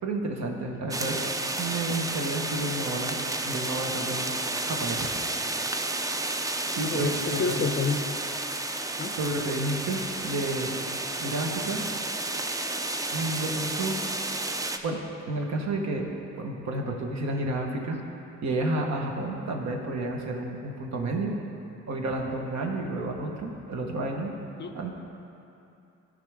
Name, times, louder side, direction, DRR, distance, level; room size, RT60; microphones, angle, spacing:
voice 1, 0.0-3.2 3.5-4.3 4.7-5.1 6.4-7.6 9.2-10.7 11.2-11.9 13.1-14.0 14.8-16.1 16.4-18.0 18.4-21.4 21.9-24.3 24.7-24.9, right 2 dB, 65° right, 1 dB, 1.2 m, -31 dB
sound 1, 0.9-14.8, right 2 dB, 10° right, 0.4 m, -31 dB
voice 2, 6.8-8.0 9.0-9.1 24.6-24.8, left 5 dB, 35° left, 7 dB, 0.5 m, -29 dB
13.5 x 5.3 x 3.5 m, 2.7 s
cardioid pair, 90°, 30 cm